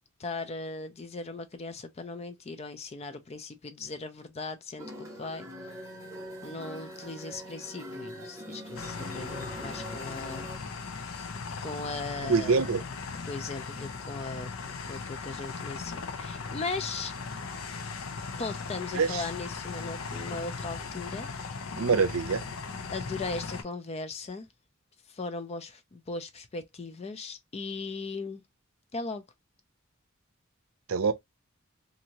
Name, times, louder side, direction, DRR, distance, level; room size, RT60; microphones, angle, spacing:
voice 1, 0.2-5.5 6.4-10.5 11.6-12.7 13.3-14.5 14.9-17.1 18.4-21.3 22.9-24.5 25.1-28.4 28.9-29.2, left 3 dB, 30° left, 0.4 m, -38 dB
sound 1, 4.8-10.6, equal, 15° right, 0.8 m, -43 dB
sound 2, 8.8-23.6, left 4 dB, 80° left, 0.6 m, -38 dB
voice 2, 12.2-12.8 18.9-19.2 21.7-22.4 30.9-31.1, right 5 dB, 85° right, 0.5 m, -25 dB
2.7 x 2.6 x 2.8 m
head